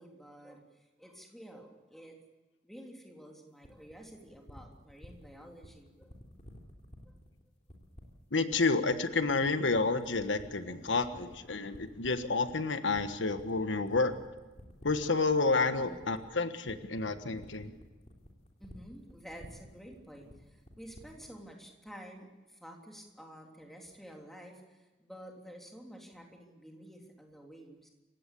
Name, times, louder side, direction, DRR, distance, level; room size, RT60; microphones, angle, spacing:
voice 1, 0.0-2.2 2.6-6.1 7.0-7.1 10.7-10.8 11.2-11.3 15.8-16.0 18.6-27.9, equal, ahead, 1 dB, 3.4 m, -51 dB
sound 1, 3.6-21.4, equal, 35° left, 3.3 m, -53 dB
voice 2, 8.3-14.2 14.8-17.8, left 3 dB, 90° left, 10 dB, 1.4 m, -30 dB
28.0 x 16.0 x 8.5 m, 1.1 s
head